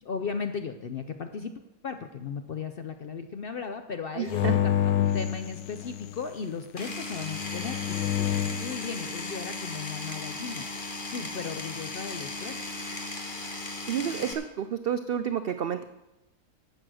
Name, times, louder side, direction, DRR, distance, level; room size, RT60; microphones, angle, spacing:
voice 1, 0.0-1.5 1.8-4.5 4.8-10.7 11.0-12.6, left 5 dB, 60° left, 7 dB, 0.6 m, -36 dB
voice 2, 4.2-4.5 13.9-15.8, right 9 dB, 85° right, 9 dB, 0.5 m, -30 dB
sound 1, 4.3-6.2 7.2-8.7, left 11 dB, 85° left, 1.1 m, -28 dB
Power tool, 6.8-14.3, left 2 dB, 35° left, 1.4 m, -36 dB
11.0 x 7.6 x 6.2 m, 0.99 s
omnidirectional pair, 1.6 m